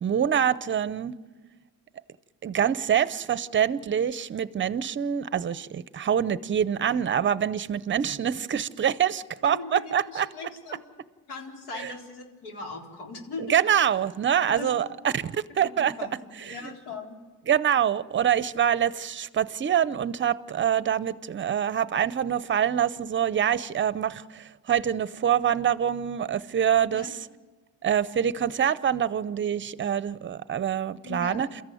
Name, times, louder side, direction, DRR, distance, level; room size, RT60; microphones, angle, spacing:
voice 1, 0.0-1.2 2.4-10.3 11.7-11.9 13.4-15.9 16.5-16.7 17.5-27.3 27.8-31.5, right 9 dB, 30° right, 0.7 m, -25 dB
voice 2, 9.4-10.8 11.3-13.6 14.5-14.7 15.6-17.2 26.9-27.1 31.0-31.6, left 3 dB, 80° left, 4.2 m, -39 dB
29.0 x 14.5 x 9.2 m
cardioid pair, 135°, 39 cm